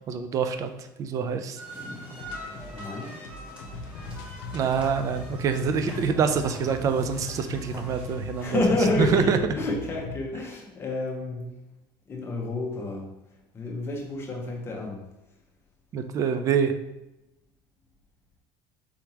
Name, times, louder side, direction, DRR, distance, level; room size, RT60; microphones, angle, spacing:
voice 1, 0.1-0.7 1.0-1.6 4.5-8.6 9.0-9.4 15.9-16.7, right 6 dB, 35° right, 9 dB, 0.4 m, -25 dB
sound 1, 1.6-9.0, left 1 dB, 10° right, 1.0 m, -43 dB
sound 2, 2.2-10.2, left 3 dB, 90° left, 0.7 m, -39 dB
voice 2, 2.7-3.1 8.0-11.5 12.1-13.1 13.5-15.0, left 2 dB, 25° left, -1 dB, 0.9 m, -29 dB
4.7 x 3.5 x 2.9 m, 0.91 s
cardioid pair, 145°, 10 cm